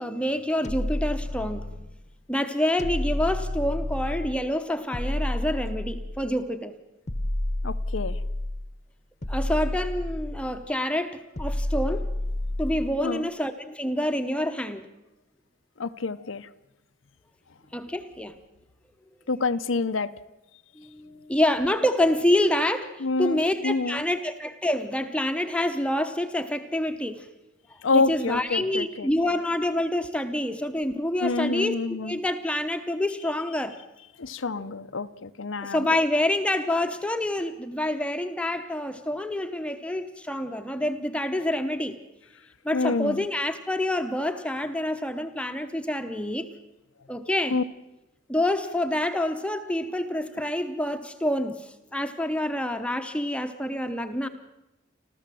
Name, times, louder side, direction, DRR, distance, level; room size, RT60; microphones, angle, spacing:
voice 1, 0.0-1.7 2.3-6.7 9.3-12.1 12.6-14.9 17.7-18.4 20.8-27.3 27.9-31.7 32.0-33.8 34.7-34.8 35.6-41.9 42.6-46.5 47.1-47.6 48.3-54.3, left 1 dB, 5° left, 7 dB, 0.9 m, -27 dB
sound 1, 0.6-2.0 2.8-4.4 4.9-6.3 7.1-8.7 9.2-10.6 11.4-13.0, left 1 dB, 35° left, 0.9 m, -30 dB
voice 2, 7.6-8.2 13.0-13.3 15.8-16.5 19.3-20.1 23.0-24.0 27.8-29.1 31.2-32.2 34.2-35.9 42.7-43.2 47.5-47.6, left 3 dB, 90° left, 10 dB, 0.8 m, -27 dB
28.5 x 13.5 x 7.6 m, 0.99 s
head